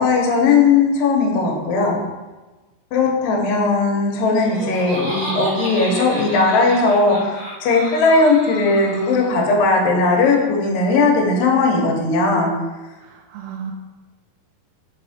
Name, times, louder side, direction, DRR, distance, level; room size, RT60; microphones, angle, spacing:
voice 1, 0.0-2.0 2.9-12.5, left 3 dB, 70° left, -1 dB, 2.4 m, -17 dB
Laughter, 4.2-9.5, equal, 40° right, 1.6 m, -32 dB
voice 2, 13.0-13.7, right 8 dB, 80° right, 1 dB, 2.3 m, -34 dB
5.4 x 5.1 x 4.2 m, 1.2 s
omnidirectional pair, 4.8 m